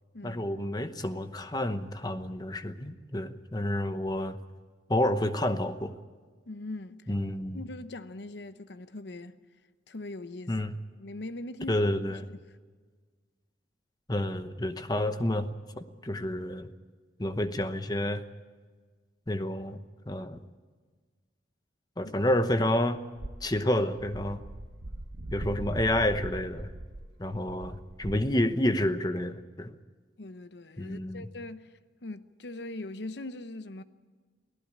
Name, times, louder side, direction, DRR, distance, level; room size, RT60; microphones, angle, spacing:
voice 1, 0.2-4.4 4.9-5.9 7.1-7.6 10.5-10.7 11.7-12.2 14.1-15.5 15.8-16.7 17.2-18.2 19.3-19.8 20.1-20.4 22.0-23.0 23.4-24.4 25.3-26.7 27.2-29.7 30.8-31.3, left 1 dB, 20° left, 0.9 m, -29 dB
voice 2, 6.5-7.1 7.5-9.4 9.9-10.5 11.0-11.8 12.1-12.4 22.0-22.1 27.3-27.4 30.2-33.8, left 2 dB, 65° left, 0.8 m, -41 dB
sound 1, 23.1-28.7, right 1 dB, 75° right, 1.1 m, -40 dB
24.0 x 15.5 x 8.7 m
head